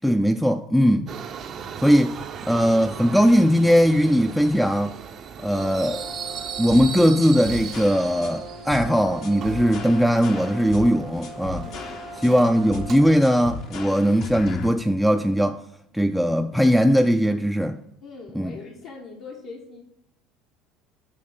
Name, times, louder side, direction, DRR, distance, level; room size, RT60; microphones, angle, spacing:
voice 1, 0.0-1.1 1.8-2.2 2.5-4.9 5.4-6.1 6.6-11.7 12.2-15.6 15.9-17.8 18.4-18.5, equal, ahead, 0.3 m, -19 dB
Subway metro underground, 1.1-13.1, right 7 dB, 50° right, 0.6 m, -38 dB
Brass instrument, 5.5-13.3, right 2 dB, 80° right, 0.9 m, -41 dB
sound 1, 6.7-14.7, left 4 dB, 55° left, 0.7 m, -37 dB
voice 2, 11.4-12.4 18.0-19.8, left 4 dB, 70° left, 1.1 m, -42 dB
7.0 x 3.1 x 5.0 m
hypercardioid pair, 75°, 0 cm